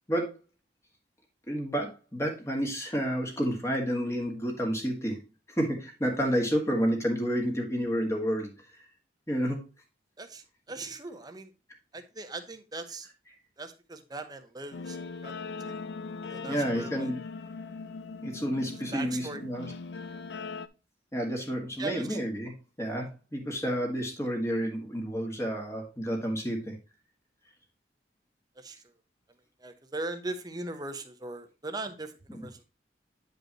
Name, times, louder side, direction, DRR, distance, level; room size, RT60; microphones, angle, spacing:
voice 1, 1.5-5.2 5.6-8.5 9.3-9.6 16.4-17.2 18.2-19.7 21.1-26.7 32.3-32.4, equal, 15° left, 1 dB, 1.7 m, -30 dB
voice 2, 10.2-11.5 11.9-13.1 13.6-15.3 15.6-15.8 16.2-17.1 18.9-19.4 21.8-22.2 28.6-28.8 29.6-32.6, right 2 dB, 25° right, 7 dB, 0.9 m, -39 dB
Guitar, 14.7-20.7, left 4 dB, 70° left, 0.5 m, -40 dB
9.3 x 5.3 x 2.9 m, 0.29 s
head